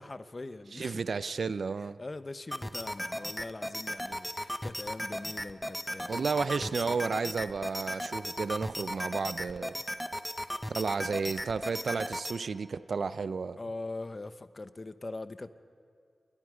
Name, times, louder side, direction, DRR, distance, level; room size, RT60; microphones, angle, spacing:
voice 1, 0.0-1.0 2.0-6.9 10.9-11.1 13.6-15.5, left 2 dB, 40° left, 11 dB, 1.0 m, -42 dB
voice 2, 0.7-2.0 6.1-9.7 10.7-13.6, right 5 dB, 75° right, 14 dB, 0.6 m, -32 dB
sound 1, 2.5-12.4, equal, 5° left, 1.0 m, -37 dB
28.5 x 21.5 x 5.0 m, 2.3 s
cardioid pair, 55°, 0 cm